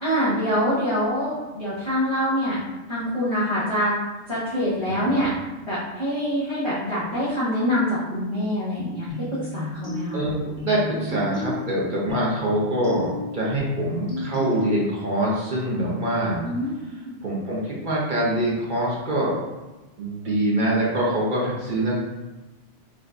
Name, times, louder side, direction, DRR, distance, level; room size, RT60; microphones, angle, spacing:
voice 1, 0.0-2.6 2.9-4.0 4.3-5.3 5.6-10.2 16.4-16.7, equal, 30° left, -10 dB, 0.8 m, -25 dB
voice 2, 4.9-5.3 10.1-16.4 17.2-19.3 20.0-22.0, right 1 dB, 50° right, -5 dB, 0.8 m, -24 dB
sound 1, 9.1-15.1, left 2 dB, 85° right, 1.8 m, -34 dB
4.7 x 2.2 x 2.5 m, 1.1 s
omnidirectional pair, 1.1 m